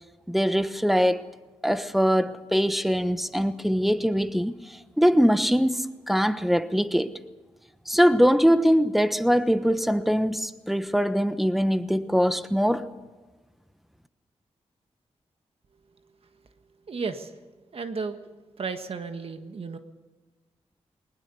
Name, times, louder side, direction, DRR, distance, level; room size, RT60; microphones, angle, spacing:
voice 1, 0.3-1.3 1.6-7.2 7.9-12.9, equal, ahead, 1.1 m, -22 dB
voice 2, 16.9-17.4 17.7-18.2 18.6-19.8, right 4 dB, 60° right, 1.5 m, -33 dB
20.5 x 20.5 x 7.0 m
cardioid pair, 80°, 11 cm